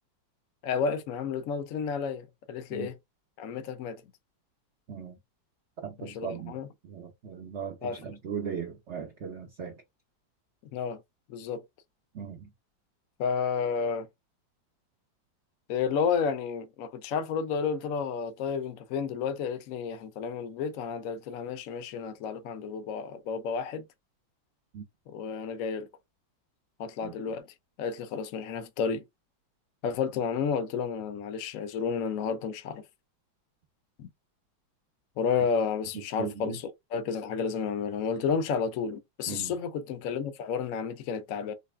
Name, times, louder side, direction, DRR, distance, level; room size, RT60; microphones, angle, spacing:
voice 1, 0.6-2.9 3.4-4.0 6.0-6.7 7.8-8.0 10.7-11.0 11.3-11.6 13.2-14.1 15.7-23.8 25.1-25.9 26.8-27.4 27.8-29.0 29.8-32.8 34.0-34.1 35.2-36.6 36.9-41.5, left 6 dB, 65° left, 0.8 m, -31 dB
voice 2, 4.9-5.2 5.8-9.8 12.1-12.5 24.7-24.9 27.0-27.1 36.2-36.6 39.3-39.6, right 7 dB, 65° right, 0.6 m, -38 dB
4.0 x 2.3 x 3.3 m
omnidirectional pair, 2.1 m